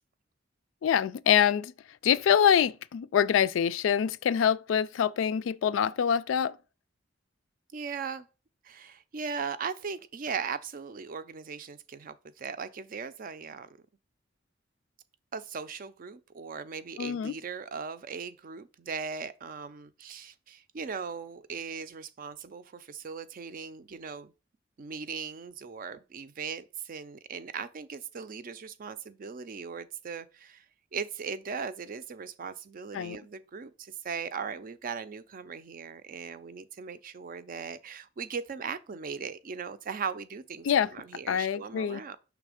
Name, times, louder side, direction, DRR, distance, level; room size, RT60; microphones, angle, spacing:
voice 1, 0.8-1.7 2.0-6.6 17.0-17.3 32.9-33.2 40.6-40.9 41.3-42.0, left 8 dB, 80° left, 0.3 m, -25 dB
voice 2, 7.7-8.3 8.6-13.8 15.3-24.3 24.8-30.6 30.9-40.7 40.9-42.2, right 5 dB, 45° right, 0.4 m, -38 dB
6.0 x 3.2 x 4.9 m
head